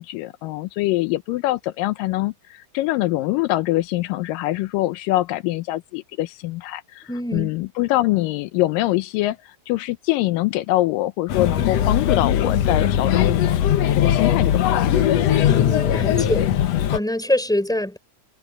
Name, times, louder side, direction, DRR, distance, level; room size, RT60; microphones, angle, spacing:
voice 1, 0.0-13.6 13.9-15.0, left 17 dB, 85° left, 2.3 m, -24 dB
voice 2, 7.1-7.5 15.4-16.5 16.9-18.0, left 1 dB, ahead, 4.9 m, -24 dB
Male speech man speaking / Child speech kid speaking / Chatter, 11.3-17.0, left 10 dB, 65° left, 1.8 m, -19 dB
omnidirectional pair, 3.9 m